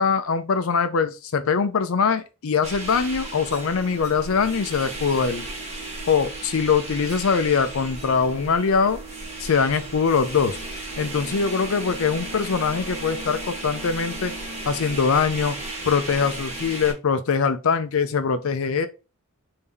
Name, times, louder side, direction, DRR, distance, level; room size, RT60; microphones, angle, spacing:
voice 1, 0.0-5.5 6.1-9.0 9.4-10.6 11.0-14.3 14.7-15.6 15.9-18.9, left 5 dB, 70° left, 0.5 m, -22 dB
sound 1, 2.6-16.9, right 2 dB, 30° right, 1.4 m, -35 dB
3.6 x 2.7 x 3.4 m
head